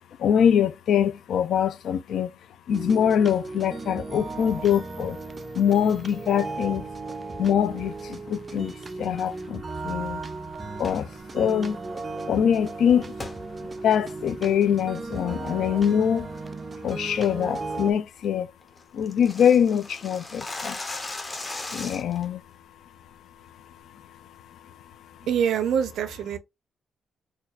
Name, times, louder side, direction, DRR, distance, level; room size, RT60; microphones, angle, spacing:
voice 1, 0.2-2.3 2.7-5.2 5.6-6.8 7.4-10.2 10.8-11.1 11.3-11.8 12.3-13.1 13.8-16.3 16.8-18.5 18.9-20.8 21.7-22.4, left 8 dB, 65° left, 0.3 m, -23 dB
sound 1, 2.7-17.9, right 3 dB, 25° right, 0.3 m, -36 dB
sound 2, 10.7-11.1 13.2-13.4 13.9-14.0 14.5-14.8 15.1-15.5 15.8-16.1 16.4-16.5 16.9-17.2 17.5-17.6 17.9-18.0 18.2-18.3 18.6-22.2, left 2 dB, 20° left, 0.6 m, -37 dB
voice 2, 25.3-26.4, right 8 dB, 75° right, 0.5 m, -25 dB
4.1 x 2.2 x 2.4 m
cardioid pair, 165°, 0 cm